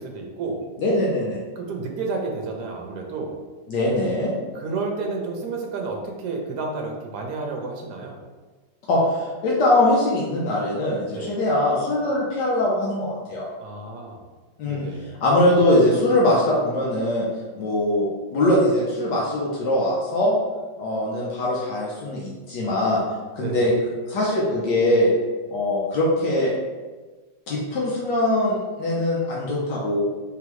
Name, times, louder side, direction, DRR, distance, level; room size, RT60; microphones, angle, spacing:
voice 1, 0.0-0.6 1.6-3.3 4.5-8.2 11.1-11.3 13.6-14.2 14.6-15.1 23.4-23.7, right 3 dB, 65° right, 1 dB, 1.1 m, -31 dB
voice 2, 0.8-1.4 3.7-4.3 8.9-13.5 14.6-17.3 17.6-20.4 20.8-23.0 23.4-23.7 24.1-25.1 25.5-26.5 27.5-30.0, left 1 dB, 70° left, -4 dB, 1.3 m, -22 dB
3.8 x 3.4 x 3.0 m, 1.3 s
omnidirectional pair, 2.0 m